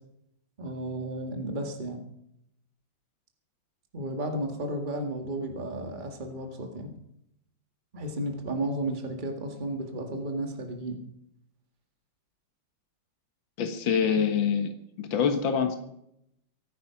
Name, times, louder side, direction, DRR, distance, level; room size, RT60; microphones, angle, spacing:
voice 1, 0.6-2.0 3.9-6.9 7.9-11.0, right 1 dB, 25° right, 3 dB, 2.0 m, -33 dB
voice 2, 13.6-14.7 15.0-15.8, left 7 dB, 70° left, 6 dB, 2.1 m, -25 dB
24.5 x 9.3 x 5.9 m, 0.78 s
omnidirectional pair, 2.2 m